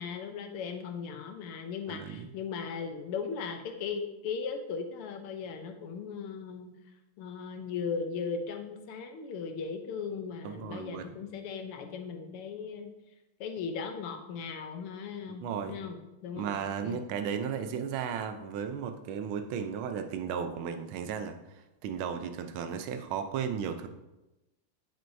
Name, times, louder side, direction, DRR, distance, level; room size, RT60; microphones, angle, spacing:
voice 1, 0.0-6.7 7.2-12.9 13.4-17.0, left 5 dB, 90° left, 5 dB, 1.7 m, -38 dB
voice 2, 1.9-2.3 10.4-11.1 15.3-15.8 16.4-21.4 21.8-23.9, right 7 dB, 75° right, 7 dB, 1.5 m, -35 dB
9.1 x 7.8 x 2.7 m, 1.0 s
omnidirectional pair, 2.4 m